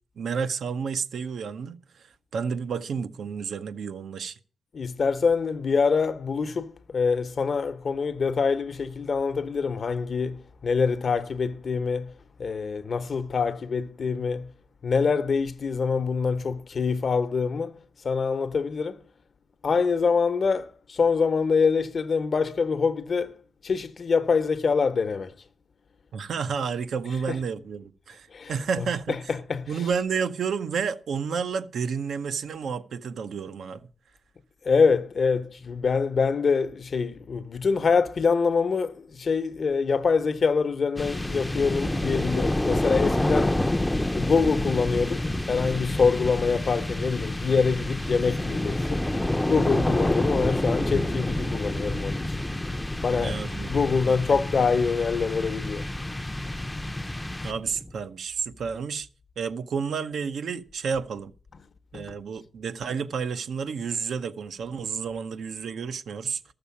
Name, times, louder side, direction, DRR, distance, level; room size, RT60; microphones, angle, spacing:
voice 1, 0.2-4.4 26.1-29.2 29.7-33.9 53.2-53.7 57.4-59.1 59.4-61.3 61.9-66.4, right 6 dB, 85° right, 0.8 m, -31 dB
voice 2, 4.7-14.6 14.8-17.8 18.0-19.1 19.6-23.4 23.6-25.3 27.3-27.4 28.3-29.9 34.6-43.7 44.1-49.1 49.5-52.4 53.0-55.9 61.9-62.2, left 5 dB, 60° left, 0.9 m, -25 dB
sound 1, 41.0-57.9, left 1 dB, 10° left, 0.5 m, -28 dB
13.5 x 6.9 x 7.0 m
cardioid pair, 95°, 0 cm